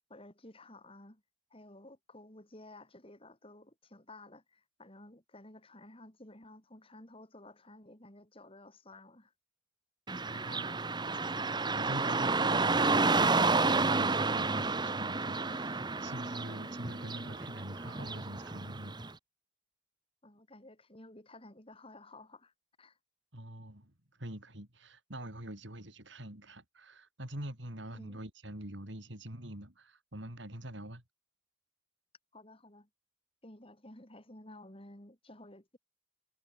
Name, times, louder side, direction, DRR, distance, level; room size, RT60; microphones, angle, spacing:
voice 1, 0.1-1.2 1.5-9.3 20.2-22.5 22.8-23.0 27.9-28.2 32.3-32.9 33.4-35.8, left 1 dB, 30° left, 4.2 m, -53 dB
Car passing by / Traffic noise roadway noise, 10.1-19.1, right 3 dB, 20° right, 1.3 m, -30 dB
voice 2, 10.2-19.0 23.3-23.9 24.2-31.0, right 1 dB, 65° right, 5.0 m, -45 dB
head